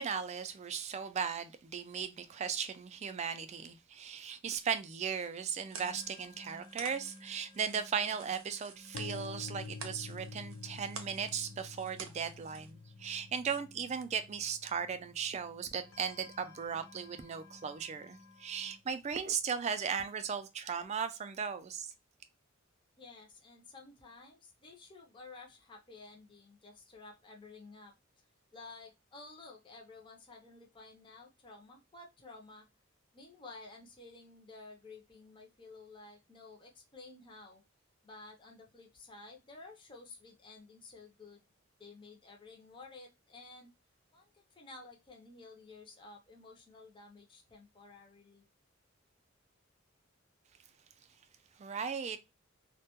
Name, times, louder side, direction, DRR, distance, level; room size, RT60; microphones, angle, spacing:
voice 1, 0.0-21.9 51.6-52.2, right 7 dB, 35° right, 0.3 m, -37 dB
sound 1, 5.1-12.7, right 5 dB, 90° right, 0.6 m, -51 dB
sound 2, 5.7-18.8, left 2 dB, 75° left, 0.8 m, -58 dB
sound 3, 8.9-16.8, left 4 dB, 90° left, 0.4 m, -49 dB
voice 2, 23.0-27.9 28.5-32.7 33.1-37.6 38.0-41.4 41.8-43.7 44.1-48.4, left 3 dB, 25° left, 0.5 m, -53 dB
2.2 x 2.2 x 2.7 m
head